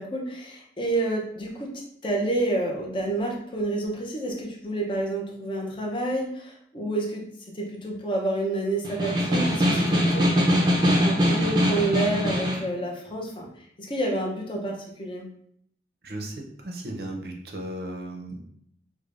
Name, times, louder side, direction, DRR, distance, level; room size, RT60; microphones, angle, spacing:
voice 1, 0.0-7.2 7.5-10.5 11.0-13.5 13.8-15.3, right 2 dB, 30° left, -1 dB, 0.7 m, -29 dB
Snare drum, 8.8-12.7, equal, 25° right, 0.6 m, -22 dB
voice 2, 16.0-18.4, right 1 dB, 60° right, 2 dB, 0.7 m, -36 dB
4.9 x 2.2 x 2.5 m, 0.68 s
head